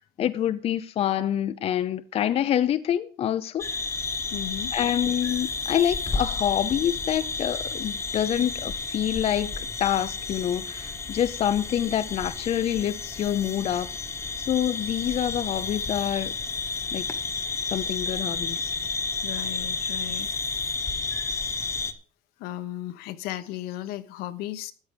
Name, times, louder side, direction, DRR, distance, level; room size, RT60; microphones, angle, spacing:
voice 1, 0.0-3.7 4.7-13.9 14.4-16.3 16.9-17.0 17.7-18.7, left 10 dB, 40° left, 0.7 m, -26 dB
sound 1, 3.6-21.9, left 4 dB, 15° left, 1.2 m, -31 dB
voice 2, 4.3-4.7 19.2-20.3 22.4-24.7, left 14 dB, 80° left, 1.2 m, -35 dB
13.5 x 9.6 x 5.0 m
cardioid pair, 150°, 16 cm